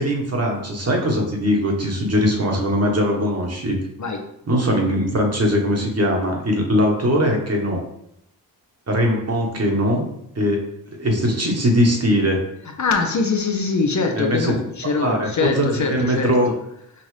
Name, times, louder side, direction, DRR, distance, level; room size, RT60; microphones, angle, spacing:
voice 1, 0.0-3.8 4.5-7.8 8.9-10.1 10.3-10.6 11.0-12.4 14.1-14.5 15.0-16.5, equal, 35° right, 0 dB, 1.3 m, -20 dB
voice 2, 12.8-16.3, left 4 dB, 45° left, 3 dB, 0.7 m, -23 dB
5.5 x 2.5 x 3.3 m, 0.75 s
supercardioid pair, 55°, 42 cm